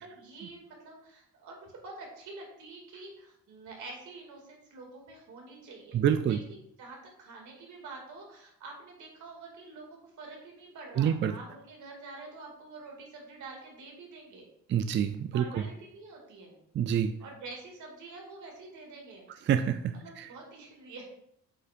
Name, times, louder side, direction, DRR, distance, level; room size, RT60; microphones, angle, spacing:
voice 1, 0.0-14.5 15.3-16.6 17.2-19.2 19.9-21.1, right 3 dB, 75° right, 0 dB, 2.3 m, -47 dB
voice 2, 5.9-6.4 11.0-11.3 14.7-15.6 16.8-17.1 19.5-20.3, right 9 dB, 40° right, 9 dB, 0.4 m, -27 dB
8.2 x 5.5 x 2.5 m, 0.73 s
cardioid pair, 90°, 30 cm